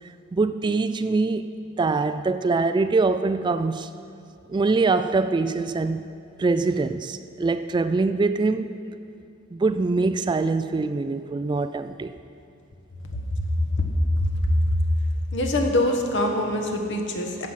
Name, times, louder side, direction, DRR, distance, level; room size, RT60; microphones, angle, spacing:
voice 1, 0.0-1.5 1.8-3.9 4.5-6.1 6.4-8.7 9.5-12.1, right 3 dB, 25° right, 11 dB, 0.3 m, -23 dB
voice 2, 13.0-13.9 14.2-14.8 15.3-17.5, left 1 dB, 65° left, 2 dB, 1.4 m, -24 dB
14.5 x 7.8 x 5.7 m, 2.5 s
head